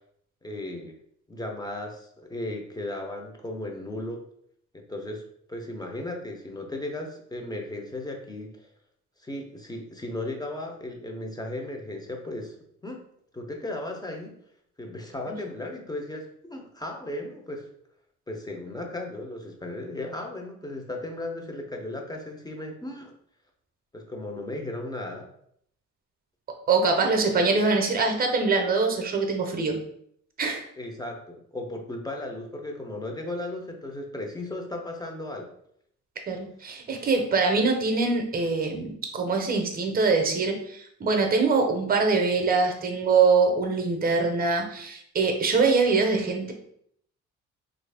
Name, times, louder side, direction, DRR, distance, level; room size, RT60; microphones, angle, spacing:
voice 1, 0.4-1.0 1.3-4.2 4.7-5.2 5.5-8.7 9.2-12.5 12.8-13.0 13.3-14.4 14.8-17.7 18.3-23.1 23.9-25.3 30.8-35.5, left 1 dB, 15° left, 2 dB, 0.6 m, -36 dB
voice 2, 26.7-29.8 30.4-30.6 36.3-46.5, right 4 dB, 30° right, 4 dB, 0.7 m, -23 dB
3.0 x 2.5 x 3.3 m, 0.69 s
cardioid pair, 90°, 30 cm